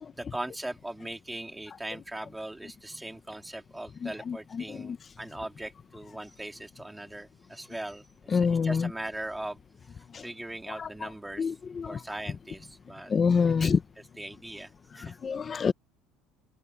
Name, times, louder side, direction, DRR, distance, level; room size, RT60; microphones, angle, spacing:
voice 1, 0.2-9.6 9.9-11.5 11.9-13.1 13.4-13.7 14.2-15.2, right 1 dB, 5° right, 3.2 m, -40 dB
voice 2, 4.0-5.0 8.3-8.9 10.1-10.2 10.8-11.1 11.4-12.0 13.1-13.8 15.0-15.7, left 5 dB, 20° left, 0.7 m, -27 dB
open air
cardioid pair, 170°, 0 cm